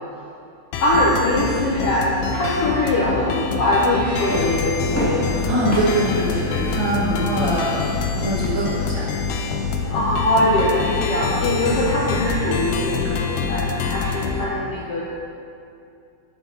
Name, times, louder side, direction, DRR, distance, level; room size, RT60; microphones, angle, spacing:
sound 1, 0.7-14.5, left 5 dB, 85° left, 1.5 m, -26 dB
voice 1, 0.8-5.5 9.8-15.1, left 1 dB, 70° left, -5 dB, 1.5 m, -22 dB
Guitar, 3.4-10.4, right 1 dB, 70° right, 3.2 m, -37 dB
sound 2, 4.3-13.1, equal, 5° left, 1.2 m, -32 dB
voice 2, 5.5-9.1, right 1 dB, 50° right, -8 dB, 1.7 m, -23 dB
10.5 x 4.5 x 5.6 m, 2.5 s
omnidirectional pair, 3.7 m